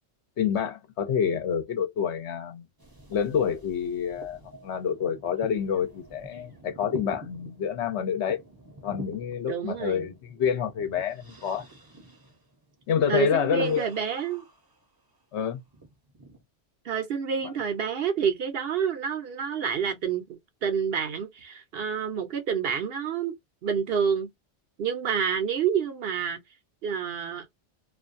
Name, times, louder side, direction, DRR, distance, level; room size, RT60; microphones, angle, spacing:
voice 1, 0.4-2.7 3.1-8.4 8.8-11.7 12.9-13.9 15.3-15.6 17.4-17.5, left 7 dB, 70° left, 1.0 m, -28 dB
sound 1, 2.8-15.2 15.6-16.4, right 2 dB, 25° right, 0.7 m, -48 dB
voice 2, 9.5-10.1 13.1-14.4 16.8-23.3 23.6-24.3 24.8-26.4 26.8-27.5, right 7 dB, 60° right, 0.8 m, -28 dB
2.4 x 2.2 x 2.5 m
omnidirectional pair, 1.2 m